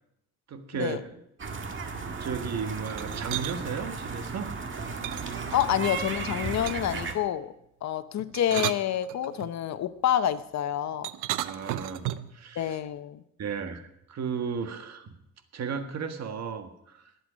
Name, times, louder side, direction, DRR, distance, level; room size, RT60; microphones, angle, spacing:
voice 1, 0.5-1.0 2.2-4.5 11.4-12.1 12.3-12.8 13.4-15.1 15.5-17.0, right 6 dB, 60° right, 7 dB, 1.6 m, -34 dB
sound 1, 1.4-7.1, right 4 dB, 40° right, 1.8 m, -35 dB
sound 2, 2.9-3.6 5.0-6.0 6.7-7.1 8.2-9.5 11.0-12.4, right 14 dB, 90° right, 0.6 m, -34 dB
voice 2, 5.5-7.5 7.8-11.1 12.6-13.2, left 10 dB, 65° left, 12 dB, 0.8 m, -28 dB
20.0 x 8.0 x 5.1 m, 0.79 s
cardioid pair, 90°, 30 cm